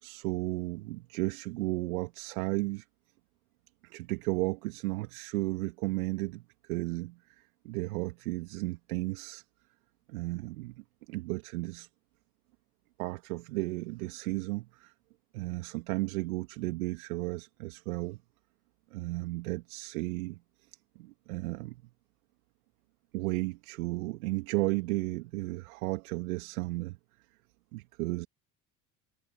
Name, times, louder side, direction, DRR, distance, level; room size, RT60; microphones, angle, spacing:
voice 1, 0.0-2.8 3.8-6.4 6.7-7.2 7.6-9.4 10.1-11.9 13.0-14.9 15.3-18.2 18.9-20.4 21.0-21.8 23.1-26.9 27.7-28.3, right 23 dB, 65° right, 2.2 m, -34 dB
figure-of-eight pair, 65°, 46 cm